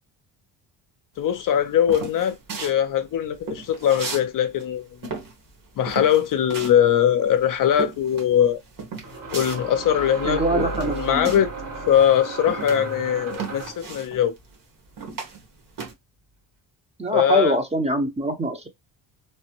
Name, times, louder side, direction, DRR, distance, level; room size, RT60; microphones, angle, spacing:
voice 1, 1.2-4.9 5.8-8.6 9.3-11.5 11.9-14.3 17.1-17.6, left 9 dB, 50° left, 0.5 m, -21 dB
sound 1, 1.3-4.3 4.5-11.6 11.9-15.9, right 5 dB, 50° right, 1.4 m, -36 dB
sound 2, 7.1-7.2 9.0-13.9, right 3 dB, 90° right, 1.8 m, -34 dB
voice 2, 10.2-11.3 17.0-18.7, right 1 dB, 15° right, 0.7 m, -24 dB
3.2 x 2.1 x 2.9 m
cardioid pair, 95°, 41 cm